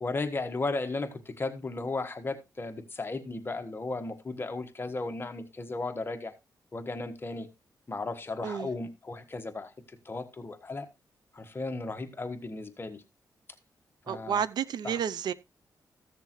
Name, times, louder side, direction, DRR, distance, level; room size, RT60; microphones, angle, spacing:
voice 1, 0.0-6.3 6.7-7.5 7.9-10.9 11.3-13.0 14.1-14.4 14.8-15.0, left 3 dB, 30° left, 1.4 m, -35 dB
voice 2, 14.1-15.3, right 8 dB, 85° right, 0.5 m, -31 dB
14.5 x 6.7 x 3.1 m
cardioid pair, 90°, 7 cm